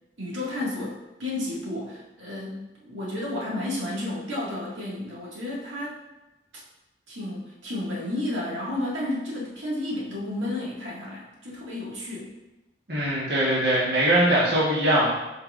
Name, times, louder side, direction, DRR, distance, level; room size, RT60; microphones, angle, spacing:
voice 1, 0.2-6.0 6.5-6.6 7.1-12.3, left 1 dB, 85° right, -5 dB, 2.0 m, -32 dB
voice 2, 12.9-15.1, right 1 dB, 60° right, -8 dB, 1.4 m, -21 dB
8.4 x 4.7 x 2.5 m, 1.0 s
head